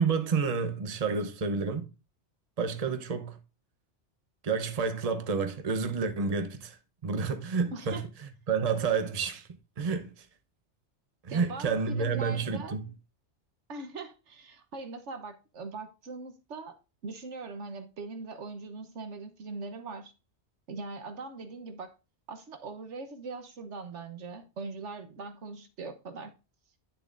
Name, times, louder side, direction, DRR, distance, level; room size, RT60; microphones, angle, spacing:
voice 1, 0.0-1.9 2.6-3.4 4.4-6.8 7.0-8.0 8.5-9.5 9.8-10.3 11.2-12.8, right 5 dB, 35° right, 0.9 m, -29 dB
voice 2, 7.7-8.0 11.3-12.8 13.7-16.7 17.0-20.1 20.7-21.9 22.3-26.3, right 3 dB, 80° right, 1.4 m, -41 dB
10.5 x 6.7 x 2.6 m
omnidirectional pair, 1.2 m